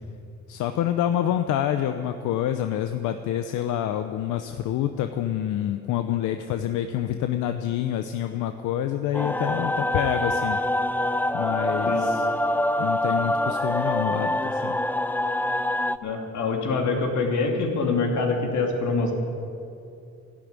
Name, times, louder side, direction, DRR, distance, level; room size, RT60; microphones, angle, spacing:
voice 1, 0.5-10.6 11.3-12.3 12.8-14.8, left 11 dB, 90° left, 8 dB, 0.7 m, -27 dB
sound 1, 9.1-16.0, left 1 dB, 5° left, 0.4 m, -25 dB
voice 2, 16.0-19.1, left 3 dB, 70° left, 1 dB, 2.7 m, -25 dB
12.5 x 11.5 x 9.6 m, 2.6 s
cardioid pair, 90°, 30 cm